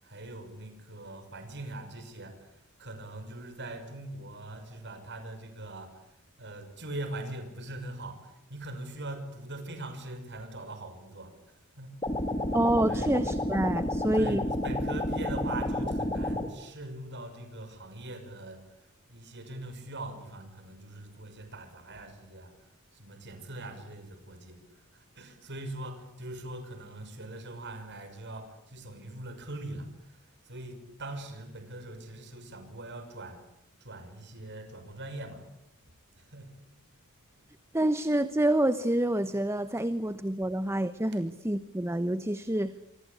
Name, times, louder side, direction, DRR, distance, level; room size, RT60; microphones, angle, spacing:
voice 1, 0.0-12.0 12.3-12.6 12.9-13.1 14.1-33.4 33.8-35.5 36.1-36.6, right 2 dB, 55° right, 7 dB, 6.1 m, -42 dB
sound 1, 12.0-16.5, left 1 dB, 20° left, 3.1 m, -30 dB
voice 2, 12.5-14.4 37.7-42.7, right 1 dB, 10° right, 12 dB, 1.0 m, -27 dB
26.5 x 25.5 x 8.4 m, 0.80 s
head